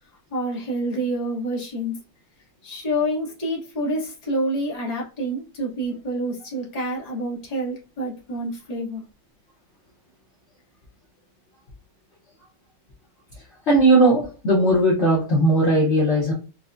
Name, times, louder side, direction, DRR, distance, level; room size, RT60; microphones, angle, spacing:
voice 1, 0.3-2.0 2.6-9.0, right 1 dB, 30° left, -4 dB, 0.8 m, -27 dB
voice 2, 13.7-16.3, right 1 dB, 60° left, -4 dB, 0.7 m, -18 dB
4.5 x 2.1 x 2.5 m, 0.34 s
omnidirectional pair, 2.1 m